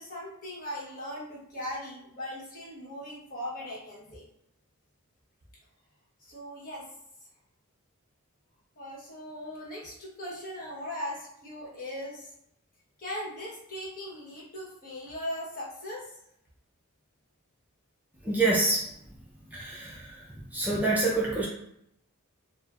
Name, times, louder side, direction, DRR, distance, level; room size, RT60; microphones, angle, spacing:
voice 1, 0.0-4.3 6.2-6.8 8.8-12.3 13.0-16.2, left 1 dB, 40° left, -5 dB, 1.1 m, -39 dB
voice 2, 18.2-19.1 19.5-21.5, right 2 dB, 10° right, -5 dB, 0.5 m, -27 dB
4.2 x 2.1 x 2.4 m, 0.75 s
head